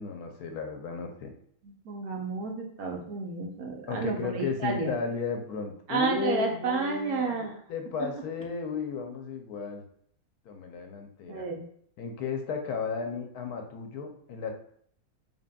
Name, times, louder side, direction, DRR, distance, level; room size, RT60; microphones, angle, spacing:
voice 1, 0.0-1.3 3.9-9.8 10.4-11.5 12.0-14.5, left 5 dB, 80° left, 5 dB, 1.1 m, -34 dB
voice 2, 1.6-4.9 5.9-7.5 11.3-11.6, right 4 dB, 70° right, 2 dB, 1.2 m, -31 dB
5.3 x 2.8 x 2.2 m, 0.63 s
omnidirectional pair, 1.7 m